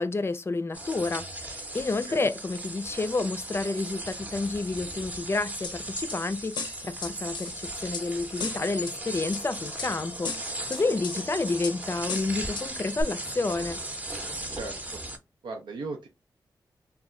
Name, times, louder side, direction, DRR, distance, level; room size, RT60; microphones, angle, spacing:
voice 1, 0.0-13.8, left 3 dB, 35° left, 0.4 m, -30 dB
sound 1, 0.7-15.2, right 1 dB, 20° right, 0.7 m, -37 dB
sound 2, 5.6-6.2 6.5-8.0 8.4-8.9 9.3-9.9 10.2-11.2 11.6-11.8 12.1-12.7 13.0-13.1, left 4 dB, 80° left, 0.5 m, -35 dB
voice 2, 14.5-15.0 15.4-16.1, right 3 dB, 90° right, 0.5 m, -37 dB
2.2 x 2.1 x 3.6 m
cardioid pair, 60°, 8 cm